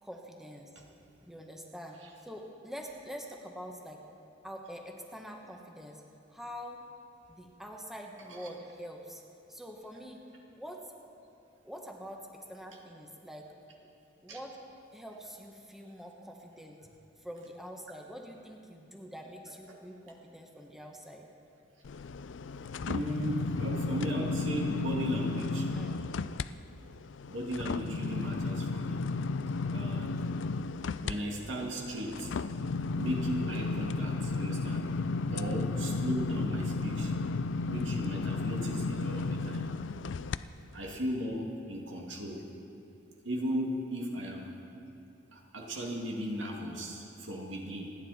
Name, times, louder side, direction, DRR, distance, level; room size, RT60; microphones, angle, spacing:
voice 1, 0.0-0.7 1.2-2.0 2.2-4.0 4.4-6.0 6.3-6.8 7.3-9.2 9.5-10.2 10.5-10.8 11.6-13.5 14.2-14.6 14.9-16.8 17.2-21.2 25.7-26.0 40.0-40.2, equal, ahead, 1 dB, 1.2 m, -45 dB
sound 1, 21.8-26.5 26.9-40.4 40.9-41.0, left 3 dB, 70° left, 0.4 m, -33 dB
voice 2, 22.8-25.7 27.3-29.1 29.7-30.2 31.0-32.3 32.9-34.9 35.3-37.1 37.7-39.7 40.7-42.4 43.2-44.5 45.3-48.0, equal, 80° right, -1 dB, 2.4 m, -36 dB
28.5 x 9.9 x 4.3 m, 2.9 s
head